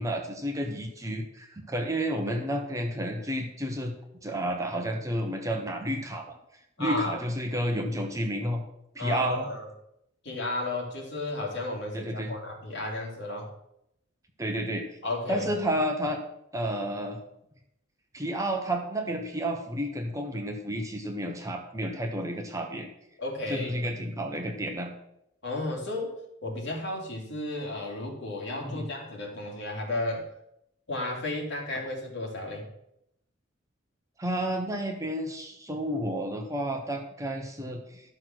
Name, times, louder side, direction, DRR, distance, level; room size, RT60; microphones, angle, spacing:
voice 1, 0.0-3.9 4.2-6.3 6.8-8.6 8.9-9.5 11.9-12.3 14.4-14.9 15.3-16.2 16.5-17.2 18.1-22.9 23.5-24.9 28.6-28.9 34.2-38.0, right 1 dB, 15° right, 3 dB, 1.0 m, -31 dB
voice 2, 6.8-7.2 9.0-9.7 10.2-13.5 15.0-15.5 23.2-23.7 25.4-26.1 26.4-30.3 30.9-32.6, left 2 dB, 55° left, -2 dB, 3.1 m, -33 dB
12.0 x 6.2 x 6.2 m, 0.79 s
head